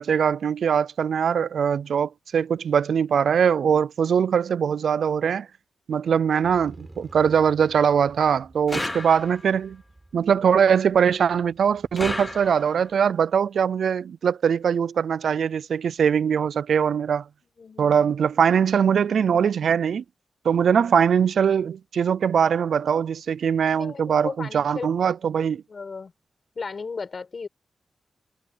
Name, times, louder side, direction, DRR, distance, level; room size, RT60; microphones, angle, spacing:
voice 1, 0.0-5.5 5.9-9.8 10.1-17.2 17.8-20.0 20.4-25.6, right 7 dB, 80° right, 0.4 m, -22 dB
Motorcycle, 6.4-12.5, right 2 dB, 15° right, 5.3 m, -50 dB
sound 1, 8.7-9.6 12.0-12.9, left 2 dB, 15° left, 0.7 m, -32 dB
voice 2, 17.6-18.1 23.7-24.9 25.7-26.1 26.5-27.5, left 4 dB, 45° left, 4.8 m, -35 dB
wide cardioid pair, 130°, 0 cm